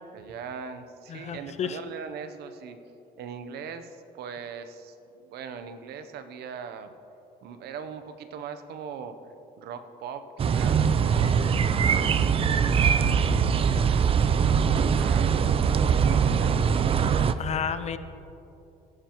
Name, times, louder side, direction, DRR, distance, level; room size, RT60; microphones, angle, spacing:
voice 1, 0.1-2.8 3.2-6.9 7.4-9.2 9.6-11.4 11.7-13.3 14.0-17.2, right 6 dB, 75° right, 9 dB, 0.8 m, -40 dB
voice 2, 1.1-1.8 17.4-18.0, left 7 dB, 40° left, 12 dB, 0.6 m, -31 dB
sound 1, 10.4-17.3, right 7 dB, 35° right, 0.4 m, -22 dB
17.5 x 10.0 x 3.0 m, 2.9 s
cardioid pair, 110°, 17 cm